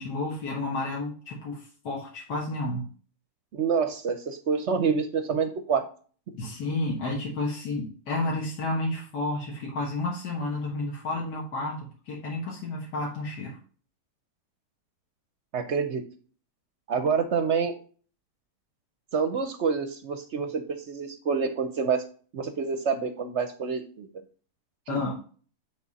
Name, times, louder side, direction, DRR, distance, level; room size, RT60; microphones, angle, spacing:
voice 1, 0.0-2.9 6.4-13.6 24.9-25.1, left 2 dB, 85° left, -3 dB, 1.9 m, -31 dB
voice 2, 3.5-5.9 15.5-16.0 16.9-17.8 19.1-22.0 22.3-24.1 24.9-25.0, right 6 dB, 60° right, 8 dB, 0.8 m, -27 dB
8.2 x 3.6 x 4.0 m, 0.41 s
omnidirectional pair, 1.7 m